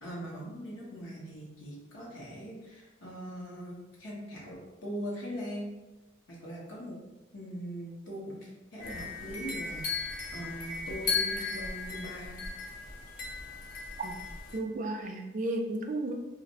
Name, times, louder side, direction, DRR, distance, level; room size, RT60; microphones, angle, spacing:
voice 1, 0.0-5.7 6.3-7.0 7.3-12.4, equal, 85° left, -4 dB, 1.1 m, -41 dB
sound 1, 8.8-14.6, left 4 dB, 45° left, 0.6 m, -36 dB
voice 2, 14.5-16.1, right 2 dB, 40° right, 3 dB, 0.3 m, -33 dB
2.6 x 2.5 x 4.1 m, 1.1 s
head